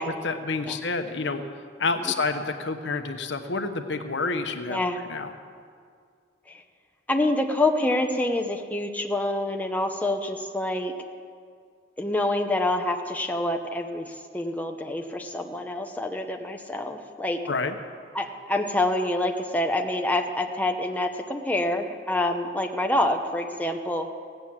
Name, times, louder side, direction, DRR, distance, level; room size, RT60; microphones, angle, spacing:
voice 1, 0.2-1.4 1.8-4.8 5.1-5.3 17.5-17.8, left 4 dB, 70° left, 7 dB, 0.9 m, -28 dB
voice 2, 4.7-5.0 7.1-10.9 12.0-17.4 18.1-24.1, left 1 dB, 10° left, 3 dB, 0.8 m, -26 dB
16.5 x 9.0 x 7.3 m, 2.2 s
head